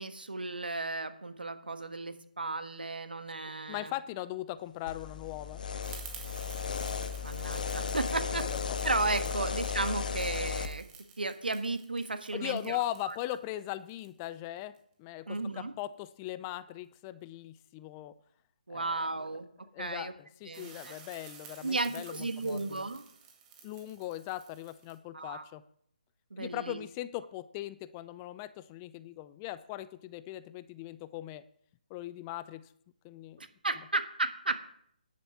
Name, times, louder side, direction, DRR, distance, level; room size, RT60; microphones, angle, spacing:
voice 1, 0.0-3.9 7.2-8.4 8.8-10.8 11.2-12.8 13.1-13.2 15.3-15.7 18.7-19.5 19.8-20.1 20.5-20.9 21.6-23.0 25.1-25.4 26.3-26.8 33.4-34.6, right 3 dB, 85° right, 9 dB, 1.5 m, -34 dB
voice 2, 3.7-5.6 8.3-8.8 9.4-9.5 12.3-18.1 18.7-19.2 19.7-22.8 23.6-25.6 26.4-31.4 31.9-32.6 33.0-33.4, left 15 dB, 20° left, 15 dB, 0.4 m, -39 dB
sound 1, 4.9-10.7, left 6 dB, 65° left, 1.3 m, -35 dB
sound 2, 5.8-14.8 20.5-25.0, right 6 dB, 15° right, 1.9 m, -52 dB
10.5 x 9.0 x 6.0 m, 0.68 s
figure-of-eight pair, 155°, 5 cm